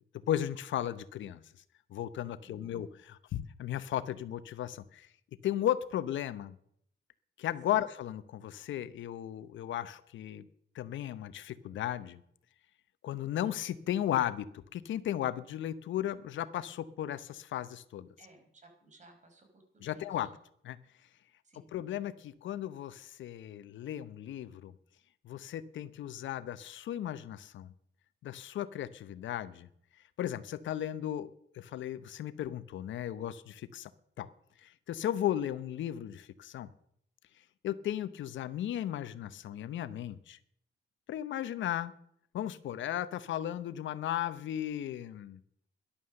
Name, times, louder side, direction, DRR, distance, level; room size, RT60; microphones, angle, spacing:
voice 1, 0.3-1.4 1.9-5.1 5.4-6.5 7.4-10.5 10.7-12.2 13.0-14.5 14.7-18.1 19.8-20.3 20.6-20.8 21.7-24.7 25.2-27.7 28.2-29.7 30.2-31.3 31.5-33.9 34.2-34.3 34.6-36.7 37.6-40.4 41.1-41.9 42.3-45.4, left 11 dB, 70° left, 14 dB, 0.9 m, -35 dB
voice 2, 2.4-3.0 7.7-7.8 18.2-20.3 21.4-21.7, right 2 dB, 35° right, 4 dB, 5.2 m, -59 dB
12.5 x 11.5 x 6.5 m, 0.68 s
cardioid pair, 90°, 20 cm